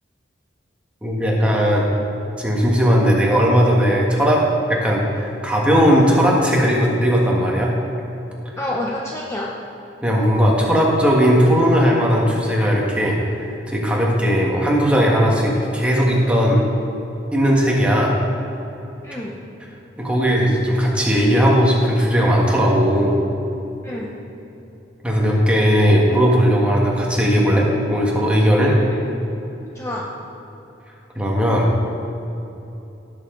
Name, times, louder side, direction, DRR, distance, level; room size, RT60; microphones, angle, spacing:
voice 1, 1.0-1.9 2.4-7.7 10.0-16.6 17.3-18.1 20.0-23.2 25.0-28.7 31.1-31.7, equal, 5° right, -3 dB, 1.6 m, -17 dB
voice 2, 8.6-9.5 19.0-19.4 23.8-24.2 28.7-28.8 29.0-29.2 29.7-30.1, left 1 dB, 15° left, -4 dB, 0.7 m, -28 dB
17.0 x 6.8 x 3.9 m, 3.0 s
head